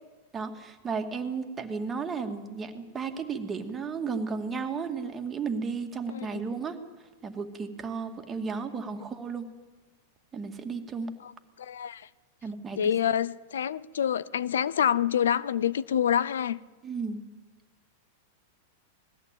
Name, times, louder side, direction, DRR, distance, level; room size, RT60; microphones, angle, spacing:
voice 1, 0.3-6.8 7.2-9.5 10.3-11.1 12.4-12.9 16.8-17.2, right 5 dB, 20° right, 5 dB, 2.3 m, -34 dB
voice 2, 6.1-6.4 11.2-11.3 11.6-12.0 12.8-16.6, left 9 dB, 80° left, 20 dB, 0.6 m, -27 dB
20.5 x 15.0 x 9.2 m, 1.3 s
hypercardioid pair, 110°, 0 cm